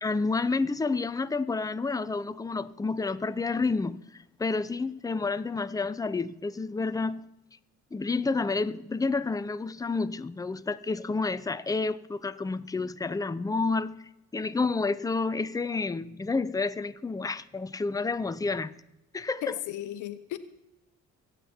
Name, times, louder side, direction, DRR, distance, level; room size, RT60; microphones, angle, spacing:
voice 1, 0.0-4.0 4.4-7.2 7.9-14.0 14.3-18.7 19.1-19.5, left 3 dB, 10° left, 0.6 m, -29 dB
voice 2, 19.4-20.4, left 13 dB, 75° left, 1.1 m, -35 dB
24.5 x 8.4 x 4.4 m
cardioid pair, 100°, 30 cm